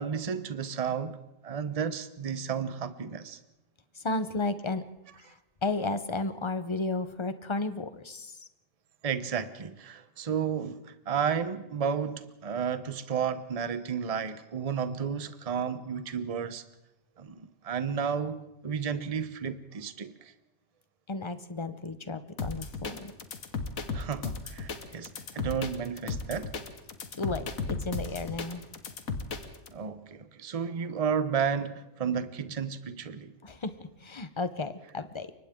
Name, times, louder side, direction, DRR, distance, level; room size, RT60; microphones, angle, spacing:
voice 1, 0.0-3.4 9.0-16.6 17.2-20.3 23.9-26.5 29.7-33.3, right 7 dB, 30° right, 0.9 m, -32 dB
voice 2, 4.0-4.8 5.6-8.3 21.1-23.1 27.2-28.6 33.4-35.4, left 3 dB, 25° left, 0.9 m, -33 dB
sound 1, 22.4-29.7, left 4 dB, 90° left, 1.9 m, -35 dB
29.0 x 24.0 x 3.8 m
omnidirectional pair, 1.4 m